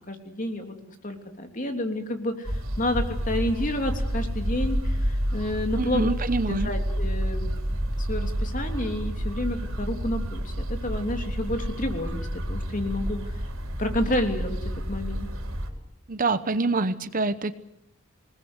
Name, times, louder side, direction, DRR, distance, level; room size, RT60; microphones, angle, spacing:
voice 1, 0.1-0.7 1.0-6.1 6.5-7.5 8.0-13.2 13.8-14.6 14.9-15.3, left 1 dB, 40° left, 5 dB, 3.2 m, -30 dB
sound 1, 2.4-15.7, equal, 70° right, 4.2 m, -29 dB
voice 2, 5.8-6.7 16.1-17.5, right 3 dB, 40° right, 12 dB, 0.9 m, -25 dB
27.0 x 20.0 x 8.1 m, 0.79 s
head